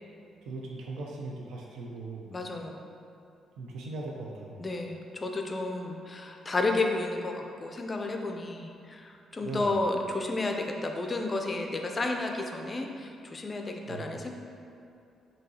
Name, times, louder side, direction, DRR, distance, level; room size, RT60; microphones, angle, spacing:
voice 1, 0.5-2.4 3.6-4.6 9.4-9.7 13.9-14.2, right 2 dB, 90° right, -2 dB, 0.4 m, -39 dB
voice 2, 2.3-2.8 4.6-14.3, left 2 dB, 25° left, 3 dB, 0.3 m, -32 dB
5.2 x 2.8 x 2.7 m, 2.6 s
cardioid pair, 140°, 0 cm